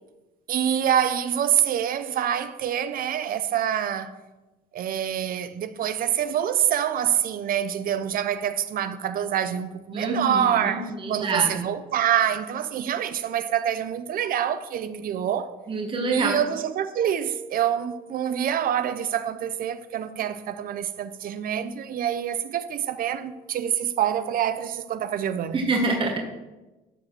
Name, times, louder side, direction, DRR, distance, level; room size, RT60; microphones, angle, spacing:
voice 1, 0.5-4.2 4.7-15.5 16.1-25.7, right 9 dB, 60° right, 0.8 m, -26 dB
voice 2, 9.9-11.5 14.8-15.0 15.7-16.3 25.5-26.2, right 3 dB, 30° right, 1.8 m, -26 dB
14.0 x 4.8 x 6.1 m
cardioid pair, 110°, 17 cm